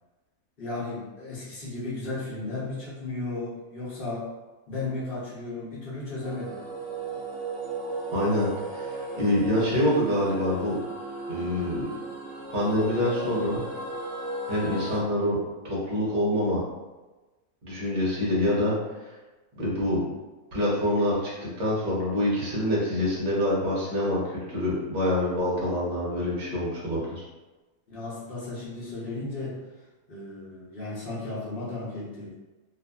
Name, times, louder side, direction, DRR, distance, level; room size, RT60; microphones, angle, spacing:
voice 1, 0.6-4.3 4.7-6.6 27.9-29.6 30.1-32.3, left 2 dB, 45° left, -8 dB, 0.8 m, -35 dB
sound 1, 6.2-15.0, right 2 dB, 65° right, 0.6 m, -35 dB
voice 2, 8.1-8.5 8.7-10.8 11.3-11.9 12.5-13.6 14.5-15.4 15.6-16.6 17.6-19.1 19.6-20.0 20.5-27.2, left 1 dB, 40° right, -6 dB, 0.7 m, -26 dB
2.6 x 2.5 x 2.2 m, 1.2 s
omnidirectional pair, 1.6 m